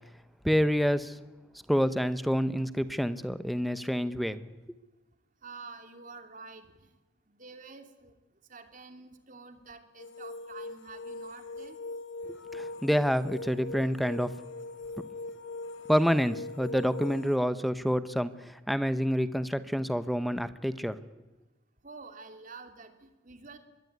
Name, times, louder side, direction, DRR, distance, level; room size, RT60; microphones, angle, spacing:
voice 1, 0.4-1.2 1.7-4.4 12.3-14.3 15.9-21.0, equal, ahead, 13 dB, 1.0 m, -28 dB
voice 2, 5.4-6.9 7.3-8.1 8.5-11.8 21.8-23.6, right 4 dB, 45° right, 7 dB, 2.8 m, -48 dB
sound 1, 10.0-17.4, left 2 dB, 80° left, 1.9 m, -41 dB
24.5 x 22.0 x 9.5 m, 1.1 s
head